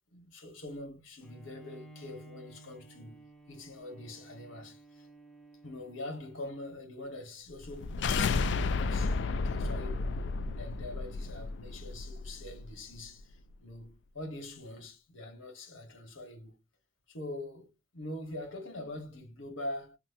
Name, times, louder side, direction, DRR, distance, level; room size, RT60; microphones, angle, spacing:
voice 1, 0.1-5.1 5.6-16.6 17.1-20.0, left 1 dB, 85° left, 1.3 m, -44 dB
Bowed string instrument, 1.2-6.9, right 2 dB, 5° left, 0.6 m, -54 dB
sound 1, 7.6-12.7, left 4 dB, 60° left, 0.3 m, -32 dB
4.1 x 2.1 x 2.6 m
head